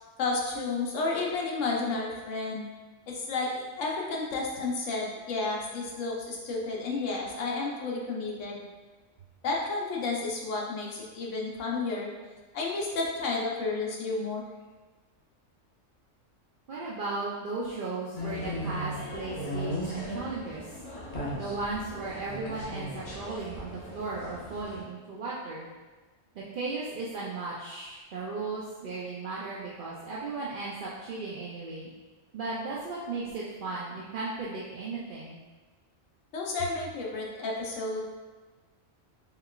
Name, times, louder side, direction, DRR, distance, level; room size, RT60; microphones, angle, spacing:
voice 1, 0.2-2.7 3.1-8.6 9.4-12.1 12.5-14.4 36.3-38.0, left 3 dB, 70° left, -2 dB, 1.0 m, -31 dB
voice 2, 16.7-20.7 21.3-25.7 26.3-31.9 32.3-35.4, right 3 dB, 60° right, -6 dB, 0.5 m, -36 dB
sound 1, 18.1-24.8, equal, 35° left, 0.8 m, -37 dB
4.3 x 3.7 x 2.3 m, 1.3 s
omnidirectional pair, 1.4 m